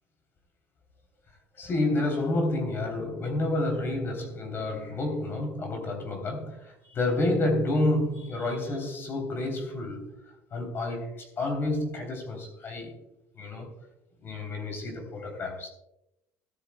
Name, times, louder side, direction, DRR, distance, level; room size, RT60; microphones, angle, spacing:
voice 1, 1.5-10.1 10.5-13.0 13.3-13.7 14.2-15.7, left 2 dB, 40° left, 3.3 m, -29 dB
16.5 x 12.5 x 2.3 m
supercardioid pair, 100°, 6 cm